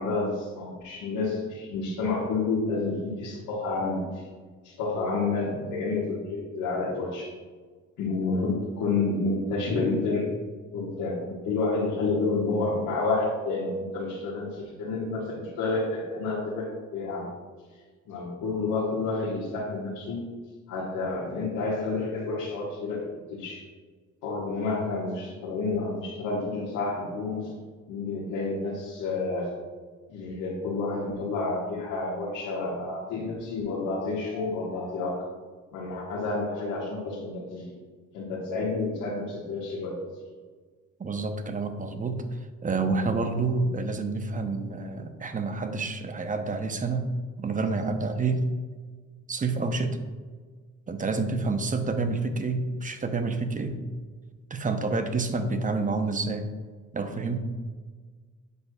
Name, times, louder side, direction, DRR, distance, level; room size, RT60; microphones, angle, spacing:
voice 1, 0.0-4.2 4.6-7.3 8.0-10.3 10.7-17.3 18.1-20.3 20.7-23.6 24.2-27.5 27.9-29.5 30.1-35.2 35.7-37.6 38.1-39.9, left 3 dB, 90° left, -6 dB, 1.4 m, -29 dB
voice 2, 41.0-48.5 49.3-50.0 50.9-53.8 54.5-56.4 56.9-57.4, right 3 dB, 25° right, 7 dB, 0.7 m, -28 dB
8.3 x 6.1 x 2.3 m, 1.5 s
cardioid pair, 90°, 30 cm